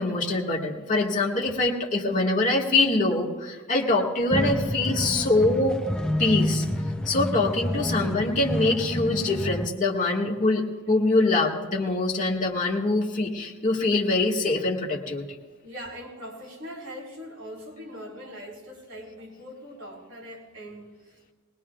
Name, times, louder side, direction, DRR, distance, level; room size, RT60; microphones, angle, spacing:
voice 1, 0.0-5.8 6.2-6.6 7.0-15.3, left 2 dB, 35° left, 1.7 m, -24 dB
sound 1, 4.3-9.7, left 1 dB, 5° left, 0.5 m, -29 dB
voice 2, 15.6-21.2, equal, 70° right, 3.7 m, -41 dB
20.5 x 20.0 x 2.3 m
head